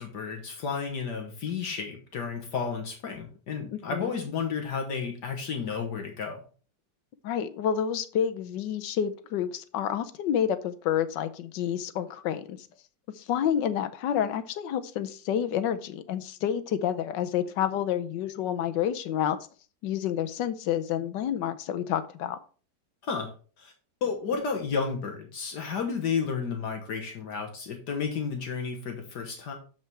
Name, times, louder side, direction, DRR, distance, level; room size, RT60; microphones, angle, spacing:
voice 1, 0.0-6.4 23.0-23.3 23.6-23.7 24.0-29.5, left 5 dB, 70° left, 3 dB, 1.8 m, -32 dB
voice 2, 3.7-4.1 7.2-12.6 13.1-19.4 19.8-22.4, left 9 dB, 90° left, 11 dB, 1.4 m, -29 dB
7.1 x 5.7 x 4.5 m, 0.38 s
omnidirectional pair, 1.9 m